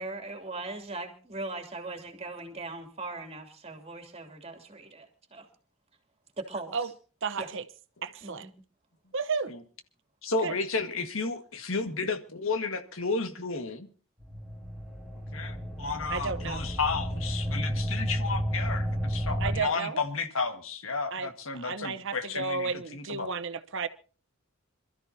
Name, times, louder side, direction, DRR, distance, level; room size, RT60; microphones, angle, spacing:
voice 1, 0.0-5.5 6.4-6.9 7.4-7.5 8.2-8.5, right 2 dB, 30° right, 2.9 m, -39 dB
voice 2, 7.2-7.6 8.0-8.5 9.1-9.5 10.4-10.5 16.1-16.6 19.4-20.0 21.1-23.9, right 5 dB, 65° right, 1.0 m, -33 dB
voice 3, 10.2-13.9 15.3-23.3, left 4 dB, 70° left, 1.8 m, -32 dB
sound 1, 14.2-19.6, equal, 5° right, 2.1 m, -32 dB
27.0 x 13.5 x 2.8 m
head